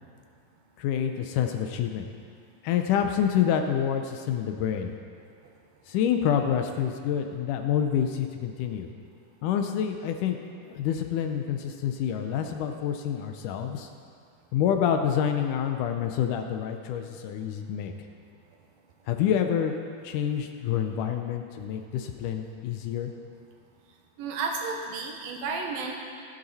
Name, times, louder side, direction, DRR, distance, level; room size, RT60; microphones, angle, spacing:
voice 1, 0.8-2.1 2.6-4.9 5.9-8.9 9.4-13.9 14.5-17.9 19.1-19.7 20.0-23.1, left 9 dB, 75° left, 5 dB, 2.0 m, -27 dB
voice 2, 24.2-26.0, right 4 dB, 90° right, 1 dB, 3.0 m, -32 dB
14.5 x 10.5 x 4.1 m, 2.2 s
omnidirectional pair, 4.0 m